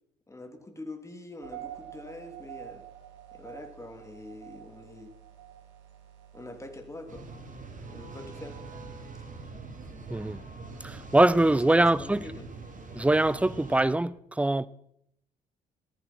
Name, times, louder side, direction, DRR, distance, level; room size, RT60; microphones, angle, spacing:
voice 1, 0.3-2.8 3.3-5.1 6.3-7.3 7.9-8.6 11.5-12.5, left 2 dB, 15° left, 3.0 m, -44 dB
sound 1, 1.4-9.5, right 12 dB, 70° right, 2.4 m, -48 dB
sound 2, 7.1-13.9, right 3 dB, 40° right, 3.0 m, -43 dB
voice 2, 10.1-10.4 10.8-12.2 12.9-14.7, right 2 dB, 5° right, 0.6 m, -23 dB
15.0 x 14.0 x 4.5 m
hypercardioid pair, 50°, 20 cm